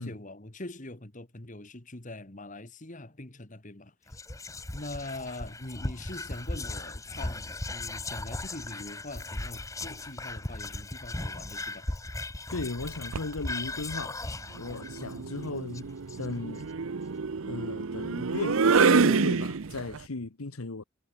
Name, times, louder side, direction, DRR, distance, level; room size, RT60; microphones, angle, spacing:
voice 1, 0.0-4.1 4.7-11.9, left 2 dB, 35° left, 1.8 m, -43 dB
Whispering, 4.1-16.6, left 2 dB, 15° left, 0.9 m, -37 dB
voice 2, 12.5-14.2 14.5-15.9 16.2-16.7 17.5-20.8, left 3 dB, 85° left, 1.2 m, -36 dB
sound 1, 12.8-13.3 14.7-20.0, right 5 dB, 70° right, 0.7 m, -27 dB
head